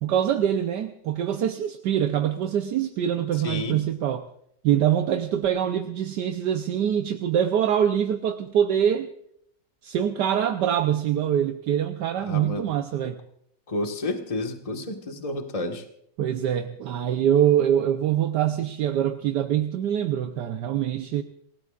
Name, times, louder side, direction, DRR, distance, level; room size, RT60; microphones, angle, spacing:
voice 1, 0.0-4.2 4.6-9.1 9.8-13.2 16.2-21.2, right 10 dB, 75° right, 6 dB, 1.4 m, -24 dB
voice 2, 3.4-3.8 12.3-12.7 13.7-15.8, left 2 dB, 20° left, 3 dB, 1.6 m, -30 dB
27.5 x 17.5 x 2.5 m, 0.71 s
omnidirectional pair, 1.9 m